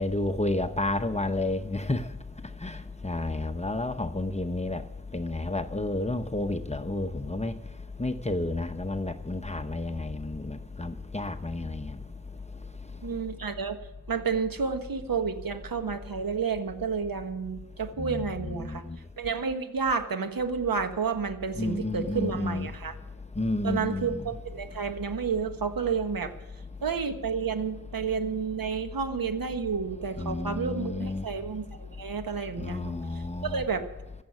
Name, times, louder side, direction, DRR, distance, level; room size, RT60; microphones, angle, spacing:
voice 1, 0.0-2.0 2.6-2.8 3.0-4.8 5.1-7.5 8.0-12.0 18.0-18.8 21.6-22.7 23.4-24.3 30.2-31.2 32.6-33.6, left 2 dB, 20° left, 0.8 m, -31 dB
voice 2, 13.0-13.8 14.1-18.8 19.2-22.9 23.6-26.3 26.8-33.8, right 5 dB, 75° right, 1.4 m, -30 dB
15.5 x 7.3 x 9.6 m
wide cardioid pair, 70°, 35 cm